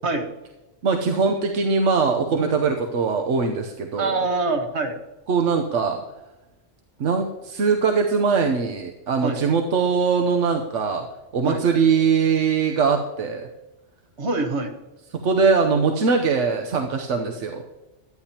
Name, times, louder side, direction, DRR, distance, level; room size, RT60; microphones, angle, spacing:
voice 1, 0.8-4.2 5.3-6.0 7.0-11.0 11.3-13.5 15.1-17.6, right 5 dB, 85° right, 3 dB, 1.2 m, -21 dB
voice 2, 4.0-5.0 9.2-9.4 11.4-11.6 14.2-14.7, right 3 dB, 65° right, 5 dB, 1.5 m, -24 dB
17.5 x 12.0 x 2.9 m, 1.0 s
omnidirectional pair, 1.2 m